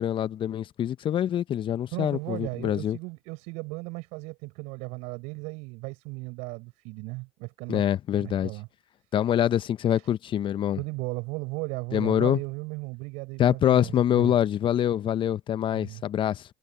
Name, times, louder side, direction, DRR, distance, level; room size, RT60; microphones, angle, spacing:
voice 1, 0.0-3.0 7.7-8.5 9.1-10.8 11.9-12.4 13.4-16.4, left 10 dB, 45° left, 0.9 m, -25 dB
voice 2, 1.9-7.8 8.2-8.7 9.9-10.1 10.8-14.3 15.7-16.0, right 27 dB, 70° right, 7.3 m, -36 dB
hypercardioid pair, 70°, 12 cm